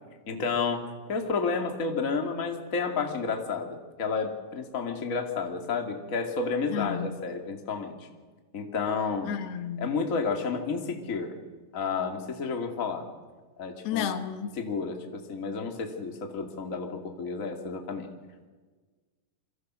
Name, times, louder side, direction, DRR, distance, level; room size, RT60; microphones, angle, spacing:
voice 1, 0.3-8.0 8.5-9.3 9.8-11.3 11.7-13.1 13.6-14.1 14.6-18.1, left 5 dB, 25° left, 1.9 m, -31 dB
voice 2, 6.7-7.2 9.3-9.9 13.8-14.5, left 9 dB, 70° left, 3.0 m, -32 dB
28.0 x 24.0 x 6.3 m
omnidirectional pair, 5.1 m